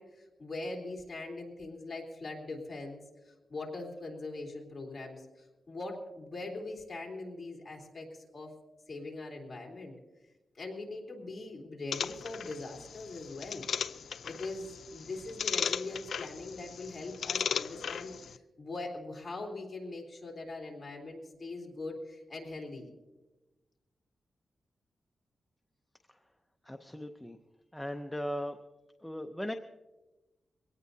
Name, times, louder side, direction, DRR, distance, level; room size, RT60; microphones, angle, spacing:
voice 1, 0.0-8.5 8.9-9.9 10.5-13.7 14.2-22.9, left 2 dB, 25° left, -1 dB, 3.3 m, -42 dB
sound 1, 11.9-18.4, left 7 dB, 75° left, 0.4 m, -37 dB
voice 2, 26.6-27.4 27.7-28.6 29.0-29.5, equal, 5° left, 5 dB, 0.6 m, -38 dB
22.5 x 17.5 x 2.7 m, 1.1 s
wide cardioid pair, 140°, 0 cm